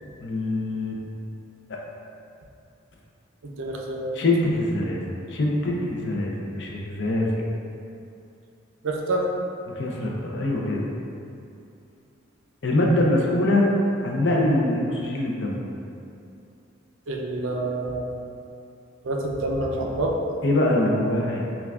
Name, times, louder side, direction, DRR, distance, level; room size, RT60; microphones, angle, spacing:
voice 1, 0.2-1.0 4.1-5.0 5.3-7.5 9.7-10.8 12.6-13.7 14.0-15.6 20.4-21.4, left 1 dB, 60° left, -2 dB, 0.5 m, -23 dB
voice 2, 3.4-4.1 8.8-9.3 17.1-18.0 19.0-20.2, right 2 dB, 75° right, 0 dB, 0.5 m, -27 dB
5.7 x 2.3 x 2.3 m, 2.6 s
head